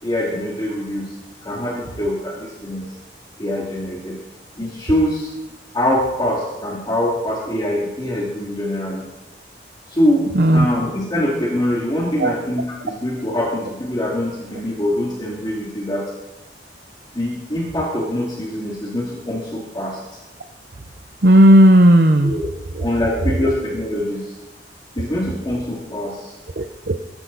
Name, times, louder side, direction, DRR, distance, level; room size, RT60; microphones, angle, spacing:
voice 1, 0.0-1.1 1.4-2.9 3.4-4.2 4.6-5.3 5.7-9.1 9.9-10.3 10.5-16.1 17.1-20.0 22.2-22.5 22.8-24.4 25.0-26.3, left 1 dB, 25° left, -3 dB, 2.3 m, -23 dB
voice 2, 10.3-10.7 12.2-12.3 21.2-22.3 22.7-22.9 23.2-23.5 26.6-26.9, equal, 55° right, 7 dB, 0.8 m, -13 dB
22.0 x 10.5 x 4.1 m, 1.0 s
head